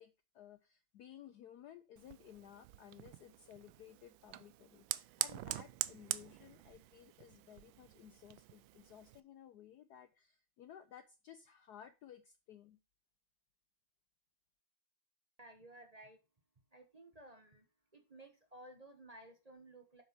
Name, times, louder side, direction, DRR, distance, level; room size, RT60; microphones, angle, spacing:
voice 1, 0.0-12.8, left 10 dB, 75° left, 12 dB, 0.9 m, -57 dB
Fire, 2.0-9.2, right 15 dB, 75° right, 1.3 m, -45 dB
voice 2, 15.4-16.2 16.7-17.6 17.9-20.0, right 1 dB, 25° right, 4 dB, 0.9 m, -56 dB
7.3 x 6.4 x 4.5 m, 0.28 s
omnidirectional pair, 2.3 m